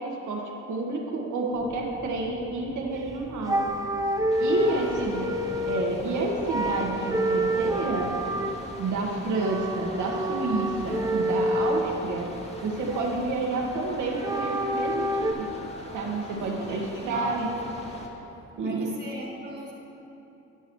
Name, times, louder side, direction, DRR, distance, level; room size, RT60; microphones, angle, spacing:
voice 1, 0.0-3.6 4.4-5.3 5.7-8.1 8.8-12.3 12.6-15.5 15.9-17.5 18.6-18.9, right 3 dB, 75° right, -1 dB, 1.4 m, -29 dB
sound 1, 1.5-8.6, equal, 5° left, 1.0 m, -46 dB
sound 2, 3.0-3.1 3.4-6.0 6.4-8.6 9.3-11.9 12.4-13.3 14.0-15.3, right 1 dB, 10° right, 0.6 m, -28 dB
sound 3, 4.3-18.1, left 1 dB, 20° left, 1.3 m, -43 dB
voice 2, 4.6-4.9 16.4-17.6 18.6-19.7, right 1 dB, 35° right, -4 dB, 1.4 m, -38 dB
16.0 x 6.0 x 3.1 m, 3.0 s
cardioid pair, 90°, 30 cm